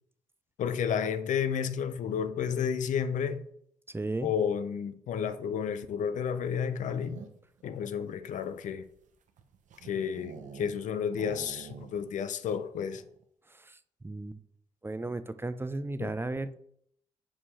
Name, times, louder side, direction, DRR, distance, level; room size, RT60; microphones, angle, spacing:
voice 1, 0.6-3.4 4.2-7.2 7.6-8.9 9.8-13.0 16.0-16.1, left 7 dB, 70° left, 0.6 m, -31 dB
voice 2, 3.9-4.3 13.5-13.8 14.0-14.4 14.8-16.6, right 2 dB, 15° right, 0.5 m, -35 dB
sound 1, 6.6-7.6 8.3-10.8 11.1-12.2 12.5-12.6 12.9-13.2, right 7 dB, 70° right, 0.9 m, -47 dB
5.4 x 5.1 x 4.8 m
supercardioid pair, 45°, 13 cm